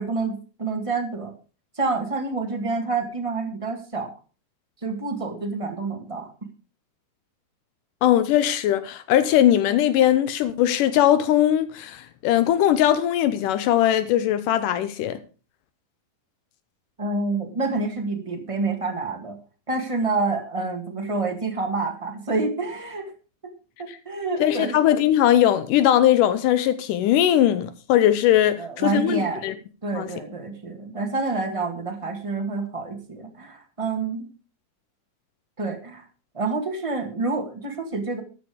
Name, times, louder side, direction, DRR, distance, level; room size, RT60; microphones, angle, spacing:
voice 1, 0.0-1.3 1.8-4.1 4.8-6.3 17.0-19.4 19.7-23.1 23.8-24.8 28.6-29.4 29.8-34.3 35.6-36.0 36.3-38.2, right 3 dB, 15° right, 1.0 m, -28 dB
voice 2, 8.0-15.2 23.9-24.0 24.4-29.5 29.9-30.1, left 11 dB, 80° left, 2.4 m, -20 dB
14.0 x 8.9 x 5.0 m
omnidirectional pair, 3.7 m